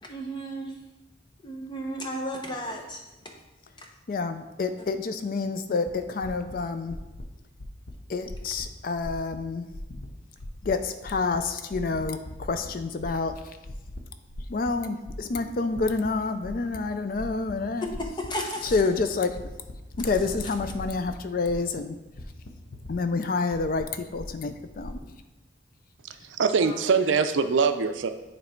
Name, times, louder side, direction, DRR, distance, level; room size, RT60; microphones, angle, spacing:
voice 1, 0.0-0.8 1.4-3.0 3.8-3.9 4.8-4.9 18.2-18.8 26.6-26.8, equal, 25° left, 1 dB, 0.8 m, -34 dB
voice 2, 4.1-7.0 8.1-9.7 10.6-13.4 14.5-17.9 18.7-19.4 20.0-22.0 22.9-25.0, left 4 dB, 45° left, 8 dB, 0.4 m, -28 dB
sound 1, 5.9-6.0 6.2-6.6 6.8-7.2 7.5-7.9 8.2-8.6 9.0-9.4 9.7-10.1 10.4-10.7 11.0-11.4 11.7-12.7 13.0-13.4 13.7-14.0 14.3-14.7 15.0-16.1 16.4-16.8 17.1-17.5 17.8-18.3 18.6-19.0 19.3-21.1 21.4-21.8 22.1-23.2 23.5-25.0, left 1 dB, 80° left, 0.9 m, -39 dB
voice 3, 26.0-28.1, right 5 dB, 75° right, 9 dB, 0.5 m, -23 dB
9.3 x 3.2 x 4.4 m, 1.0 s
head